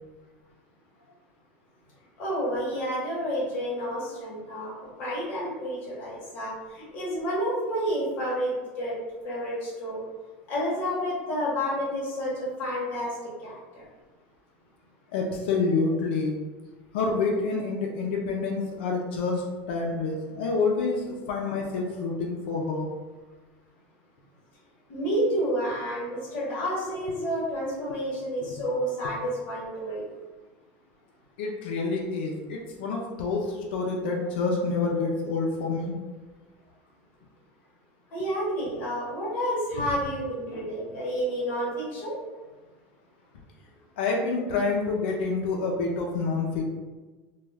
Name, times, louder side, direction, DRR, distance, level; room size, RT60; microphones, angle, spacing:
voice 1, 2.2-4.7 5.0-8.9 9.2-10.0 10.5-13.1 13.4-13.8 24.9-30.0 38.1-42.2, equal, 35° left, -6 dB, 1.0 m, -30 dB
voice 2, 15.1-16.4 16.9-22.9 27.9-28.0 31.4-35.9 40.5-40.6 44.0-46.6, left 4 dB, 90° left, 0 dB, 0.4 m, -28 dB
2.2 x 2.2 x 3.2 m, 1.3 s
supercardioid pair, 180°, 6 cm